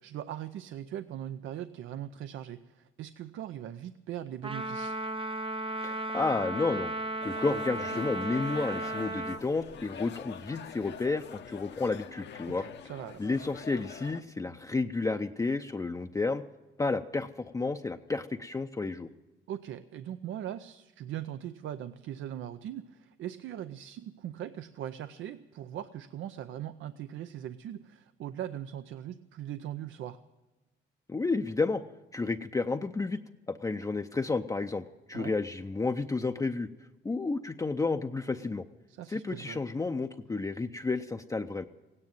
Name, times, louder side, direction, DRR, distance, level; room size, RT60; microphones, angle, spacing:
voice 1, 0.0-5.0 12.4-13.3 19.5-30.2 35.1-35.4 38.9-39.6, right 11 dB, 75° right, 11 dB, 0.6 m, -40 dB
Trumpet, 4.4-9.4, right 2 dB, 25° right, 0.6 m, -35 dB
voice 2, 5.8-6.9 7.2-12.7 13.2-16.4 16.8-19.1 31.1-31.8 32.1-33.2 33.5-38.7 39.1-41.6, left 3 dB, 15° left, 5 dB, 0.5 m, -31 dB
sound 1, 7.2-14.2, left 8 dB, 60° left, 0.9 m, -46 dB
16.5 x 9.8 x 9.0 m, 1.1 s
cardioid pair, 90°, 20 cm